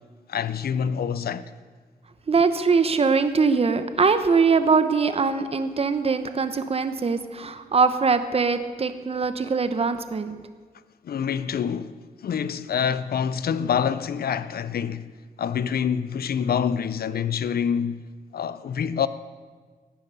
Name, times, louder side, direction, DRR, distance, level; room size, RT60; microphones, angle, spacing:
voice 1, 0.3-1.5 11.0-15.1 15.4-18.0 18.3-19.1, left 7 dB, 80° left, 0.5 m, -26 dB
voice 2, 2.3-10.4, right 5 dB, 40° right, 0.9 m, -22 dB
15.0 x 9.8 x 6.8 m
wide cardioid pair, 155°, 16 cm